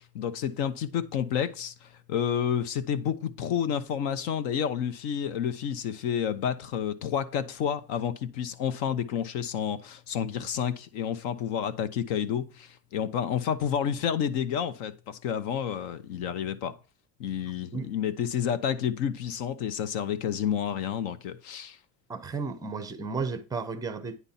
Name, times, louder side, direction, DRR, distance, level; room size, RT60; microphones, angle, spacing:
voice 1, 0.0-16.7 17.2-21.8, left 8 dB, 65° left, 1.0 m, -30 dB
voice 2, 22.1-24.3, right 4 dB, 10° right, 0.5 m, -33 dB
9.7 x 4.1 x 5.7 m
cardioid pair, 175°, 39 cm